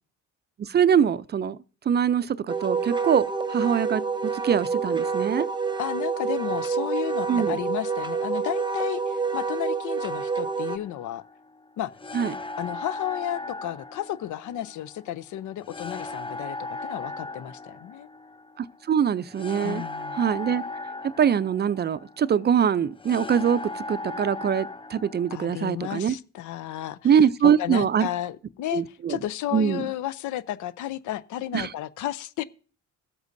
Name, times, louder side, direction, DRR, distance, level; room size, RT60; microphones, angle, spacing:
voice 1, 0.6-1.6 1.9-5.5 7.3-7.5 12.1-12.4 18.6-19.8 20.1-20.6 21.2-26.1 27.0-28.1 28.7-29.2 29.5-29.8 31.5-31.7, right 8 dB, 35° right, 0.4 m, -23 dB
Wind instrument woodwind instrument, 2.5-10.8, right 5 dB, 15° right, 0.8 m, -28 dB
voice 2, 5.8-11.2 11.8-11.9 12.6-18.1 19.6-20.2 25.3-27.1 27.4-32.4, left 13 dB, 75° left, 0.6 m, -33 dB
sound 1, 10.3-25.6, left 3 dB, 15° left, 0.6 m, -38 dB
21.5 x 8.0 x 2.6 m
cardioid pair, 90°, 30 cm